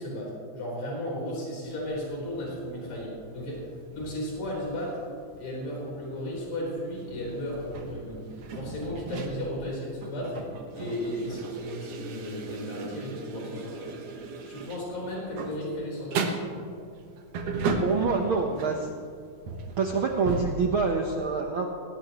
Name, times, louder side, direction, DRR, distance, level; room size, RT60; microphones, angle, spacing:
voice 1, 0.0-5.0 5.4-8.2 8.5-10.5 10.7-14.0 14.5-16.4, equal, 85° left, -4 dB, 5.8 m, -35 dB
sound 1, 1.7-19.0 19.3-20.4, right 4 dB, 60° right, 2.1 m, -37 dB
voice 2, 17.8-19.0 19.8-21.7, right 4 dB, 80° right, 2 dB, 1.1 m, -26 dB
19.5 x 18.5 x 3.0 m, 2.3 s
omnidirectional pair, 3.8 m